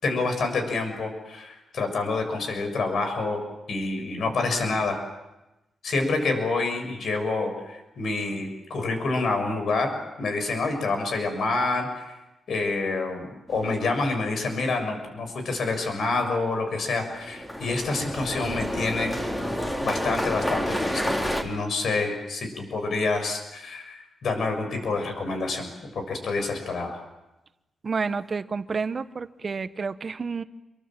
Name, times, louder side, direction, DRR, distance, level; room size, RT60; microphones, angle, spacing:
voice 1, 0.0-3.4 3.7-5.0 5.8-9.9 10.2-12.1 12.5-19.1 19.8-21.1 21.4-27.0, left 3 dB, 65° left, 6 dB, 6.8 m, -27 dB
sound 1, 13.5-14.0 17.1-21.4, equal, 15° left, 3.9 m, -29 dB
voice 2, 27.8-30.4, right 5 dB, 40° right, 12 dB, 1.1 m, -30 dB
27.5 x 23.5 x 7.6 m, 0.99 s
cardioid pair, 115°, 0 cm